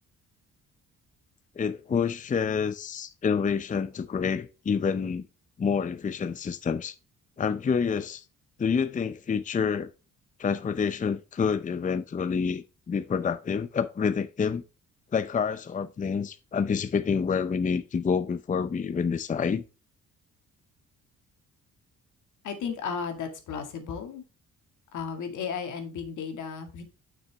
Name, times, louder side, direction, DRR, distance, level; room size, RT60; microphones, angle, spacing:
voice 1, 1.6-5.3 5.6-6.9 7.4-8.2 8.6-9.9 10.4-14.6 15.1-19.6, left 6 dB, 25° left, 0.6 m, -28 dB
voice 2, 22.4-24.2 24.9-26.8, left 6 dB, 75° left, 2.0 m, -34 dB
7.1 x 6.2 x 3.4 m
cardioid pair, 90°, 30 cm